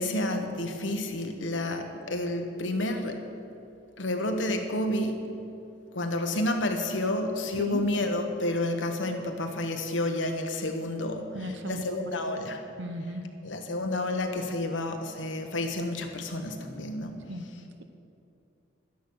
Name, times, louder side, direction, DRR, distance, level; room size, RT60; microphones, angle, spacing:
voice 1, 0.0-3.2 4.0-5.2 5.9-12.6 13.4-17.1, left 1 dB, 85° left, 4 dB, 1.4 m, -30 dB
voice 2, 11.3-12.0 12.8-13.2 17.3-17.4, equal, 80° right, 8 dB, 1.0 m, -35 dB
12.0 x 10.0 x 6.4 m, 2.7 s
head